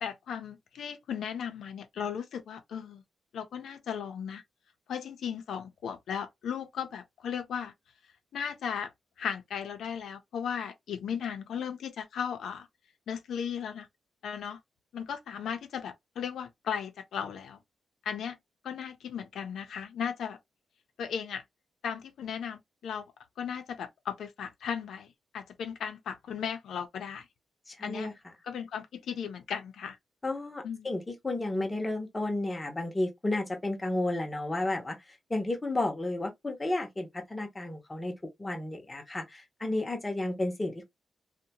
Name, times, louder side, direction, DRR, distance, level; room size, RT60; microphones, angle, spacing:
voice 1, 0.0-3.0 3.3-4.4 4.9-7.7 8.3-8.9 9.2-12.7 13.1-13.9 14.2-14.6 14.9-17.6 18.0-18.3 18.6-20.4 21.0-21.4 21.8-23.0 23.4-27.3 27.8-28.1 28.5-30.0 30.6-30.9, left 7 dB, 85° left, 0.5 m, -36 dB
voice 2, 27.7-28.1 30.2-40.8, left 2 dB, 15° left, 0.7 m, -32 dB
2.7 x 2.1 x 2.8 m
wide cardioid pair, 145°, 0 cm